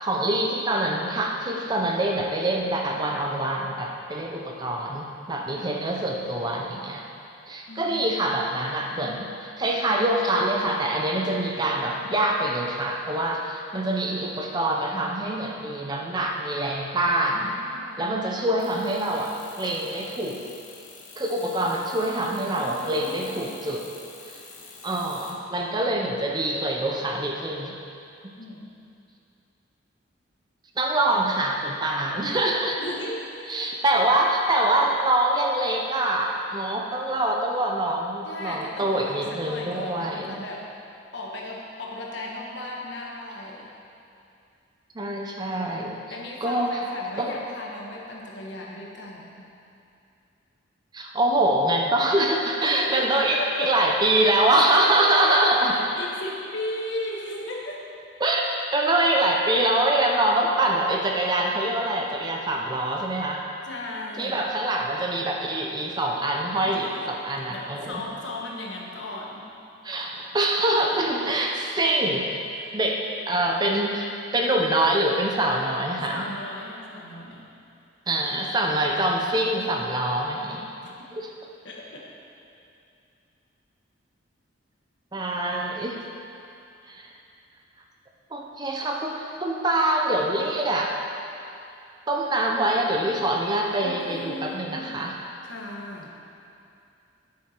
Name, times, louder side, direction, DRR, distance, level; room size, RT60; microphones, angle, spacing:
voice 1, 0.0-7.0 7.5-17.6 18.0-20.4 21.2-23.9 24.3-24.4 24.8-27.8 30.8-32.8 33.5-40.4 44.9-46.0 46.4-46.8 47.2-47.4 50.9-55.8 58.2-63.5 64.2-67.9 69.8-72.3 72.7-76.2 78.1-80.7 81.1-81.3 85.1-86.0 86.9-87.1 88.3-91.0 92.1-95.2, right 1 dB, 20° right, 1 dB, 0.5 m, -25 dB
voice 2, 7.7-8.3 17.3-18.1 22.5-23.4 28.4-28.8 32.8-33.6 38.3-40.7 41.1-43.7 46.1-49.5 52.0-52.1 52.6-53.8 54.8-57.8 63.6-64.5 66.6-67.1 67.5-69.5 72.5-72.8 75.9-77.5 80.8-81.0 81.6-82.1 93.8-94.9 95.4-96.1, left 2 dB, 55° left, -2 dB, 1.3 m, -36 dB
sound 1, 18.6-25.3, left 4 dB, 40° left, 1.1 m, -46 dB
9.7 x 7.1 x 4.4 m, 2.6 s
head